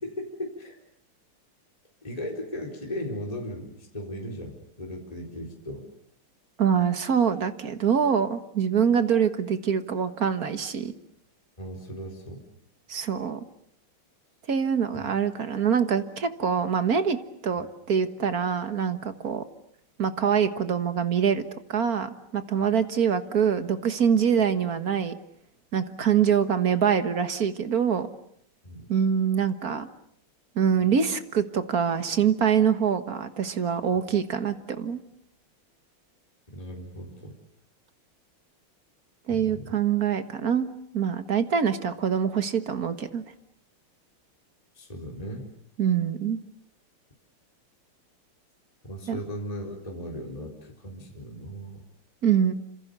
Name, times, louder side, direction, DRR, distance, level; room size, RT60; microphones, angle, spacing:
voice 1, 0.0-0.8 2.0-5.8 11.6-12.4 14.9-15.1 28.6-28.9 36.5-37.3 39.3-39.8 44.7-45.4 48.8-51.8, equal, 15° left, 0 dB, 4.3 m, -37 dB
voice 2, 6.6-10.9 12.9-13.4 14.5-17.2 17.4-19.4 20.0-21.4 21.7-25.1 25.7-28.1 28.9-29.9 30.6-35.0 39.3-40.7 40.9-43.2 45.8-46.4 49.1-49.2 52.2-52.5, right 7 dB, 45° right, 10 dB, 1.8 m, -24 dB
28.5 x 27.0 x 6.8 m, 0.67 s
omnidirectional pair, 2.4 m